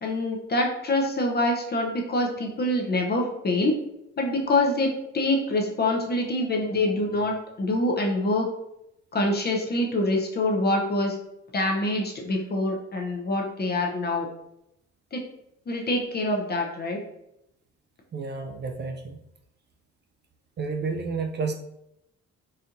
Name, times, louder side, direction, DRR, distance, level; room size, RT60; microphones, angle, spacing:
voice 1, 0.0-3.7 4.2-8.5 9.1-11.2 11.5-14.3 15.1-15.2 15.7-17.0, left 1 dB, 35° left, 1 dB, 0.6 m, -25 dB
voice 2, 18.1-19.2 20.6-21.5, right 4 dB, 35° right, 5 dB, 0.4 m, -31 dB
4.2 x 2.6 x 2.5 m, 0.83 s
cardioid pair, 90°, 30 cm